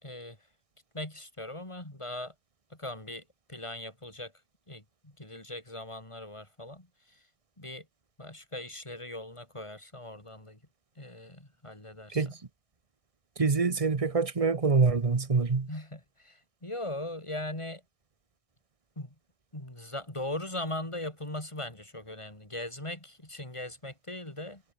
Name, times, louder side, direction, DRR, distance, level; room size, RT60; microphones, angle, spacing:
voice 1, 0.0-0.4 0.9-2.3 2.7-3.2 3.5-4.3 4.7-6.9 7.6-7.9 8.2-10.6 11.0-12.3 15.7-17.8 19.0-19.1 19.5-24.6, left 1 dB, 25° left, 4.4 m, -39 dB
voice 2, 13.4-15.7, right 4 dB, 30° right, 1.1 m, -25 dB
omnidirectional pair, 1.3 m